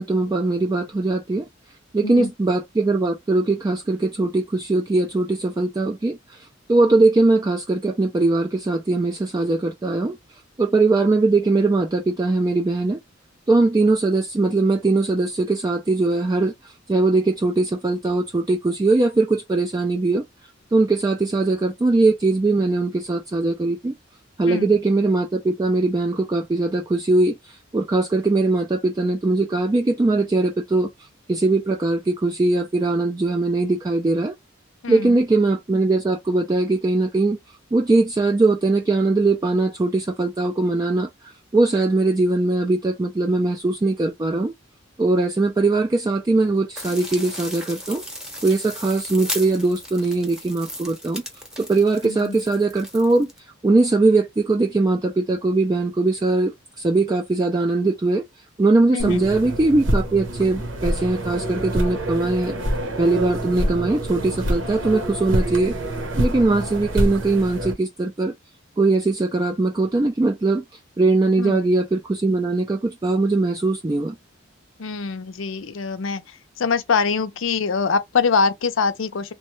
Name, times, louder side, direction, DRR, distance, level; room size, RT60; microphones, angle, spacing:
voice 1, 0.0-1.5 1.9-6.4 6.7-10.2 10.6-13.0 13.5-20.2 20.7-23.9 24.4-30.9 31.3-34.3 34.9-37.4 37.7-41.1 41.5-44.5 45.0-48.0 48.4-51.2 51.6-53.3 53.6-58.2 58.6-62.5 63.0-65.8 66.2-68.3 68.8-70.6 71.0-74.2, right 2 dB, 20° right, 0.3 m, -20 dB
voice 2, 24.5-24.8 34.8-35.2 52.0-52.4 58.9-59.3 71.4-71.6 74.8-76.2 76.6-79.3, left 5 dB, 85° left, 0.6 m, -24 dB
sound 1, 46.8-53.4, equal, 5° right, 0.8 m, -36 dB
sound 2, 59.0-67.7, right 1 dB, 80° right, 0.9 m, -26 dB
3.1 x 2.2 x 3.0 m
head